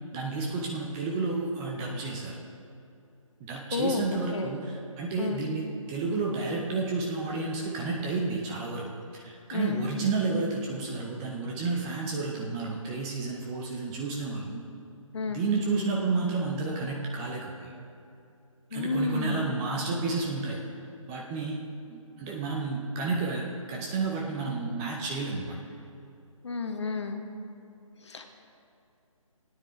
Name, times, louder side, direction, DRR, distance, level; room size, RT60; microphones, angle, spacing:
voice 1, 0.1-2.4 3.4-8.8 9.1-14.6 15.3-17.7 18.7-20.6 21.1-21.6 21.9-25.6, right 3 dB, 10° right, -2 dB, 0.6 m, -31 dB
voice 2, 3.7-4.6 5.2-5.4 9.5-9.8 15.1-15.4 18.7-19.6 26.4-27.2 28.0-28.3, left 3 dB, 55° left, 5 dB, 1.3 m, -31 dB
17.0 x 9.4 x 3.7 m, 2.6 s
figure-of-eight pair, 150°, 18 cm